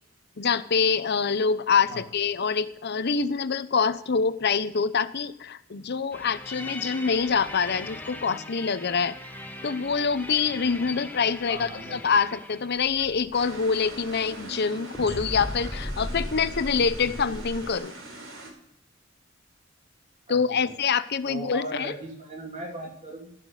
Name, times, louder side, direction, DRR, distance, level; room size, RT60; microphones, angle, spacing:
voice 1, 0.4-9.2 9.6-17.9 20.3-22.0, left 5 dB, 55° left, 13 dB, 0.8 m, -25 dB
sound 1, 6.1-14.7 14.9-17.8, left 1 dB, 10° left, 1.1 m, -39 dB
voice 2, 11.5-12.3 20.3-20.8 21.2-23.3, right 1 dB, 35° right, 0 dB, 3.1 m, -38 dB
sound 2, 13.3-18.5, right 2 dB, 80° right, 5.3 m, -42 dB
16.5 x 6.0 x 8.2 m, 0.75 s
head